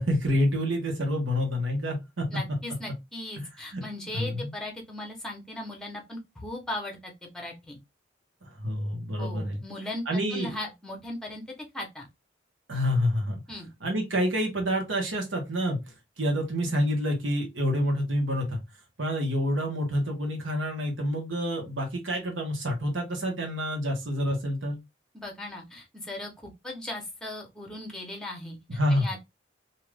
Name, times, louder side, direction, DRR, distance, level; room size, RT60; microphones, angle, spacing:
voice 1, 0.0-2.4 3.4-3.8 4.1-4.5 8.4-9.6 10.1-10.6 12.7-13.4 13.8-15.8 16.2-18.6 19.0-24.8 28.7-29.1, equal, 80° right, 1.0 m, -28 dB
voice 2, 2.3-7.8 9.2-11.4 11.7-12.1 13.5-13.7 25.1-29.2, left 1 dB, 5° left, 0.8 m, -38 dB
2.6 x 2.4 x 3.2 m
head